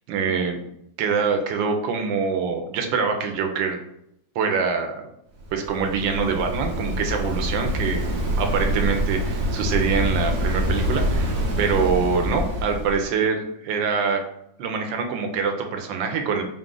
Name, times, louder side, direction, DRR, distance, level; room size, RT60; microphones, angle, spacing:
voice 1, 0.1-0.6 1.0-3.8 4.3-5.1 5.5-14.2 14.6-16.4, right 5 dB, 80° right, 4 dB, 1.4 m, -25 dB
Waves surf, 5.4-13.0, equal, 55° right, 0.8 m, -25 dB
4.7 x 2.4 x 3.7 m, 0.76 s
omnidirectional pair, 2.0 m